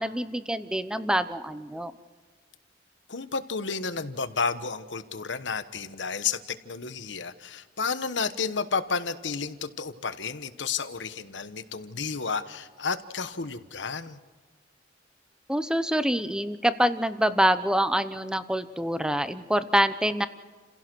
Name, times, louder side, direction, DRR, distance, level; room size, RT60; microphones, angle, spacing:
voice 1, 0.0-1.9 15.5-20.3, equal, 5° right, 12 dB, 0.8 m, -25 dB
voice 2, 3.1-14.2, left 5 dB, 80° left, 11 dB, 1.2 m, -31 dB
29.5 x 16.5 x 6.2 m, 1.4 s
head